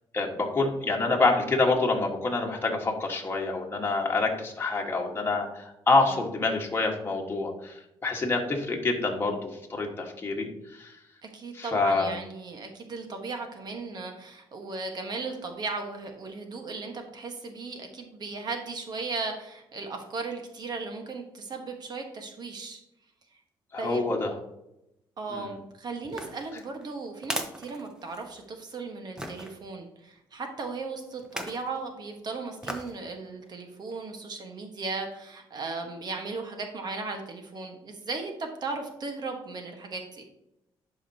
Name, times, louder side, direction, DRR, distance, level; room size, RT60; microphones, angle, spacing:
voice 1, 0.1-10.9 11.5-12.1 23.7-24.4 25.3-25.5, left 3 dB, 25° left, 0 dB, 1.4 m, -27 dB
voice 2, 11.2-22.8 23.8-24.1 25.2-40.2, right 3 dB, 50° right, 4 dB, 1.3 m, -36 dB
sound 1, 26.0-28.5 29.2-29.5 31.2-31.7 32.6-33.0 33.5-33.6, equal, 5° right, 1.1 m, -37 dB
11.0 x 5.1 x 2.8 m, 0.84 s
cardioid pair, 100°, 9 cm